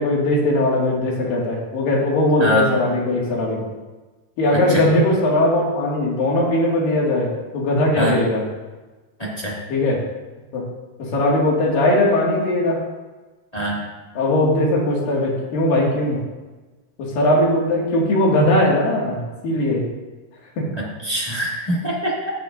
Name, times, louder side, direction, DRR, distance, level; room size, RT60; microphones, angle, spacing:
voice 1, 0.0-3.7 4.4-8.4 9.7-10.0 10.5-10.6 11.0-12.8 14.1-16.2 17.0-19.9 20.6-20.7, left 1 dB, 60° left, -3 dB, 3.5 m, -19 dB
voice 2, 4.5-4.8 7.9-8.2 9.2-9.5 13.5-13.8 20.8-22.3, equal, 15° left, -7 dB, 1.2 m, -24 dB
16.5 x 8.5 x 2.6 m, 1.2 s
omnidirectional pair, 4.8 m